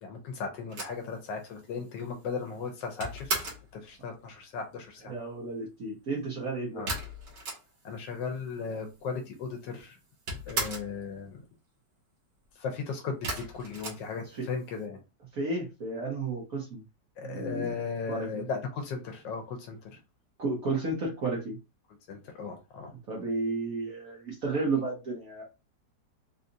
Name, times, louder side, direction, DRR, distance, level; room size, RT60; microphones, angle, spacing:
voice 1, 0.0-3.3 3.7-5.1 6.8-6.9 7.8-10.0 10.5-11.4 12.6-15.0 17.2-20.0 22.1-22.9, left 5 dB, 80° left, 1.4 m, -36 dB
sound 1, 0.7-3.7 6.9-8.0 8.3-8.4 8.6-9.4 9.7-11.0 13.2-14.7, right 2 dB, 70° right, 1.8 m, -36 dB
voice 2, 5.0-6.8 14.2-14.5 15.3-16.8 17.2-17.8 18.1-18.4 20.4-21.6 23.1-25.4, right 3 dB, 55° right, 1.3 m, -32 dB
3.9 x 2.4 x 2.7 m
omnidirectional pair, 2.0 m